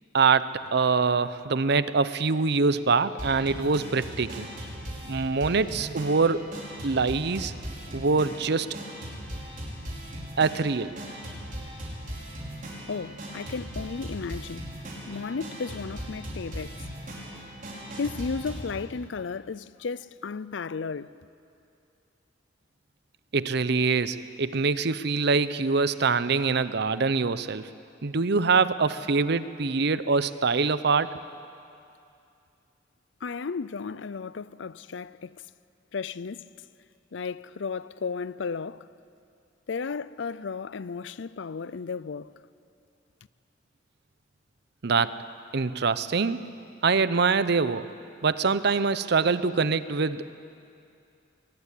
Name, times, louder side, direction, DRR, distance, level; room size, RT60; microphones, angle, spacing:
voice 1, 0.1-4.5 5.1-6.4 6.8-7.5 7.9-8.8 10.4-11.0 23.3-27.7 28.0-31.1 44.8-45.2 45.5-46.4 46.8-47.9 48.2-50.4, right 4 dB, 60° right, 0.7 m, -24 dB
sound 1, 3.2-18.7, equal, 45° right, 5.4 m, -39 dB
voice 2, 12.9-14.7 15.1-17.4 18.0-21.2 33.2-35.4 35.9-36.5 37.1-38.9 39.7-42.4, left 5 dB, 75° left, 0.5 m, -34 dB
22.0 x 19.5 x 8.4 m
head